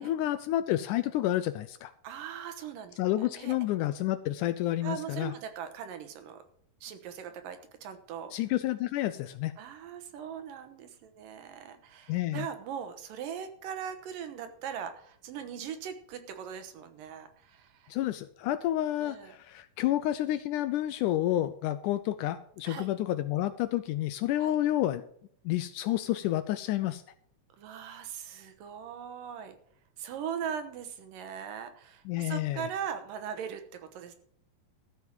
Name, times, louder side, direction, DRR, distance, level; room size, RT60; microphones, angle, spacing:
voice 1, 0.0-1.9 3.0-5.3 8.3-9.5 12.1-12.5 17.9-25.0 25.5-27.0 32.1-32.6, left 14 dB, 80° left, 12 dB, 1.9 m, -30 dB
voice 2, 2.0-3.5 4.8-6.4 6.8-8.3 9.6-17.9 19.0-19.4 22.6-22.9 24.4-24.6 27.6-29.6 30.0-34.1, right 8 dB, 80° right, 8 dB, 2.8 m, -40 dB
13.5 x 5.9 x 7.3 m, 0.64 s
omnidirectional pair, 4.0 m